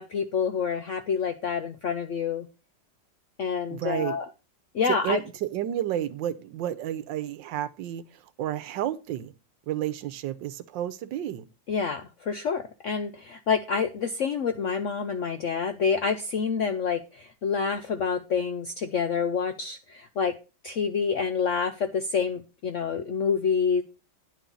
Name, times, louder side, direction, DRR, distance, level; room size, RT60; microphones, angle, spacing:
voice 1, 0.0-2.5 3.4-4.3 4.7-5.2 11.7-20.3 20.6-23.8, left 6 dB, 70° left, 0.7 m, -27 dB
voice 2, 3.7-4.2 4.9-9.3 9.7-11.5, right 12 dB, 80° right, 1.3 m, -31 dB
9.7 x 3.8 x 6.9 m
omnidirectional pair, 2.0 m